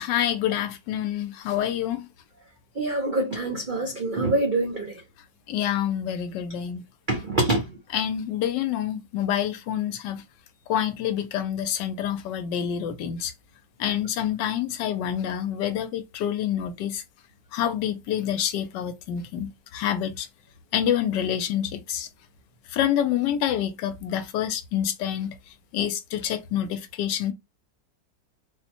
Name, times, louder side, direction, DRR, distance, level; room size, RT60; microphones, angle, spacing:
voice 1, 0.0-2.0 5.5-6.8 7.9-10.2 10.7-13.3 13.8-17.0 17.5-20.3 20.7-22.1 22.7-25.3 25.7-27.3, left 10 dB, 90° left, 1.2 m, -27 dB
voice 2, 2.8-5.0 7.1-7.8, right 2 dB, 70° right, 0.4 m, -25 dB
4.1 x 2.1 x 2.8 m
omnidirectional pair, 1.9 m